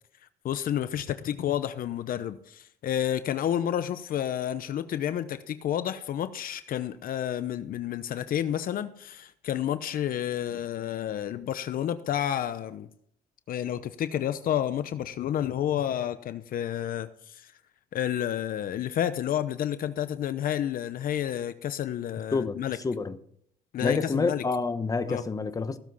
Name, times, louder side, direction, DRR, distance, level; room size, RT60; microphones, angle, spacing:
voice 1, 0.4-12.9 13.5-17.5 17.9-22.8 23.7-24.4 25.1-25.2, left 10 dB, 55° left, 0.8 m, -30 dB
voice 2, 22.3-23.2 23.8-25.8, left 4 dB, 20° left, 1.1 m, -28 dB
16.0 x 7.5 x 5.6 m
cardioid pair, 110°, 17 cm